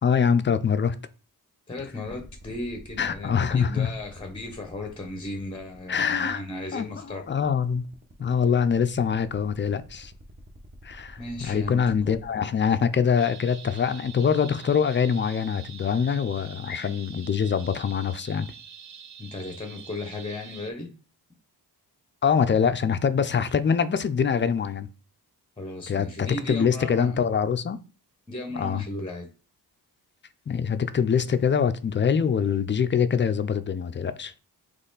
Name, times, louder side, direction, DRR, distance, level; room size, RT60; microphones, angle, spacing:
voice 1, 0.0-1.0 3.0-3.9 5.9-6.4 6.7-7.8 8.2-10.1 10.8-18.5 22.2-24.9 25.9-27.8 28.6-28.8 30.5-34.3, left 7 dB, 30° left, 0.4 m, -24 dB
voice 2, 1.7-7.3 11.2-11.8 19.2-20.9 25.6-27.2 28.3-29.3, left 2 dB, 15° left, 0.8 m, -35 dB
sound 1, 2.1-12.2, right 2 dB, 25° right, 0.9 m, -50 dB
sound 2, 13.2-20.7, right 8 dB, 50° right, 0.5 m, -45 dB
4.2 x 3.0 x 3.9 m
wide cardioid pair, 105°, 38 cm